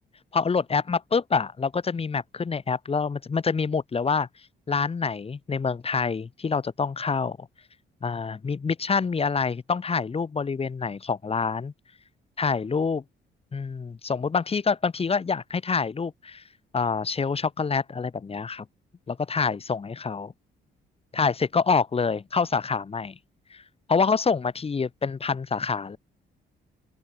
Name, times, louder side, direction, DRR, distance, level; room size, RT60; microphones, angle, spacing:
voice 1, 0.3-4.3 4.7-7.5 8.0-11.7 12.4-13.0 13.5-16.4 16.7-18.6 19.1-20.3 21.1-23.2 23.5-23.6 23.9-26.0, left 5 dB, 30° left, 1.1 m, -26 dB
open air
cardioid pair, 90°, 20 cm